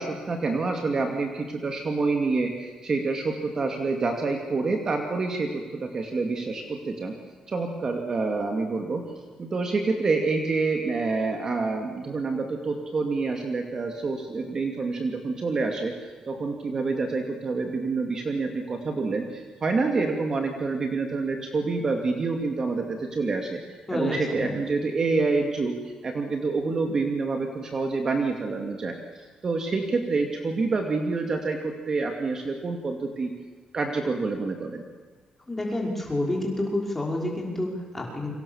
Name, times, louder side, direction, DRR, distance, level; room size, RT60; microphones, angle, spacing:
voice 1, 0.0-7.1 7.5-9.1 9.4-15.9 16.3-23.6 23.9-25.7 26.0-29.0 29.4-33.3 33.7-34.8, right 3 dB, 30° right, 3 dB, 2.5 m, -27 dB
voice 2, 23.9-24.5 35.5-38.3, left 1 dB, 10° left, 0 dB, 5.2 m, -29 dB
28.5 x 24.5 x 7.3 m, 1.4 s
cardioid pair, 175°, 2 cm